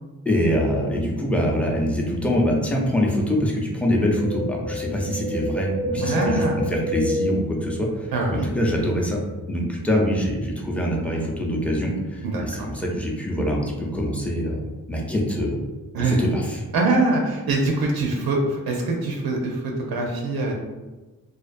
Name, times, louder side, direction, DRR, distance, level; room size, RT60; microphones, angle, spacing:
voice 1, 0.2-9.2 9.5-15.6 16.0-16.6, equal, 5° left, -2 dB, 0.5 m, -24 dB
Wind, 4.0-8.3 8.6-8.7, left 1 dB, 80° left, 0.7 m, -29 dB
voice 2, 5.9-6.6 8.1-8.5 12.2-12.7 15.9-16.2 16.7-20.5, right 2 dB, 80° right, 0 dB, 0.5 m, -23 dB
2.4 x 2.4 x 2.4 m, 1.2 s
cardioid pair, 65°, 36 cm